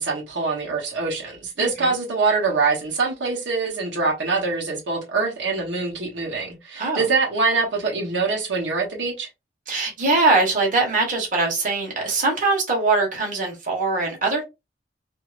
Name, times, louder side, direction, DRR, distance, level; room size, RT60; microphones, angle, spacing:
voice 1, 0.0-9.3, right 4 dB, 90° right, 1.0 m, -24 dB
voice 2, 1.6-1.9 6.8-7.1 9.7-14.4, right 3 dB, 45° right, 1.2 m, -22 dB
3.0 x 2.7 x 2.5 m
head